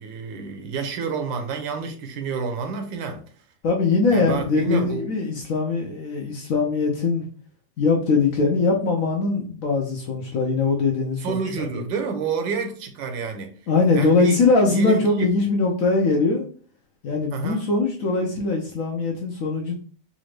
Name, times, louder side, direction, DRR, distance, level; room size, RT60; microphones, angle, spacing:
voice 1, 0.0-3.2 4.1-5.0 11.2-13.5 13.9-14.4 14.7-15.0 17.3-17.6, right 5 dB, 85° right, 1.5 m, -29 dB
voice 2, 3.6-7.2 7.8-11.8 13.7-16.4 17.0-19.7, left 3 dB, 65° left, 0.9 m, -21 dB
4.2 x 2.6 x 3.2 m
omnidirectional pair, 2.0 m